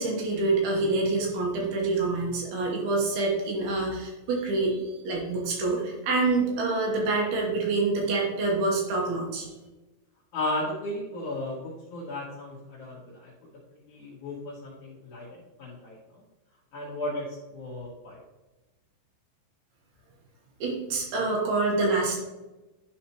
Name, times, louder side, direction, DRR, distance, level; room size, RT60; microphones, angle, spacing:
voice 1, 0.0-9.5 20.6-22.2, right 3 dB, 70° right, -1 dB, 2.8 m, -26 dB
voice 2, 10.3-13.3 13.9-16.0 16.7-18.2, left 1 dB, 80° left, -6 dB, 1.7 m, -35 dB
11.5 x 4.3 x 3.0 m, 1.1 s
omnidirectional pair, 5.3 m